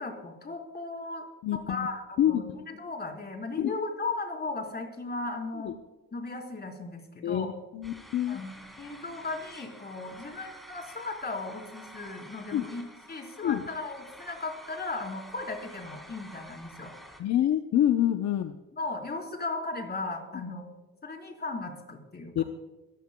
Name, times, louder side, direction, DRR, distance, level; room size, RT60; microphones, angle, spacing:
voice 1, 0.0-1.3 1.5-5.7 6.1-7.5 8.3-8.5 8.8-12.8 13.1-16.9 18.8-20.7 21.0-22.4, left 3 dB, 35° left, 2 dB, 4.2 m, -36 dB
voice 2, 1.4-1.9 2.2-2.4 3.6-3.7 5.6-5.7 7.2-8.4 12.5-12.6 13.4-13.6 17.2-18.6 22.4-22.5, left 11 dB, 65° left, 7 dB, 0.8 m, -26 dB
sound 1, 7.8-17.2, equal, ahead, 3.3 m, -49 dB
21.5 x 15.0 x 2.3 m, 1.1 s
cardioid pair, 90°, 30 cm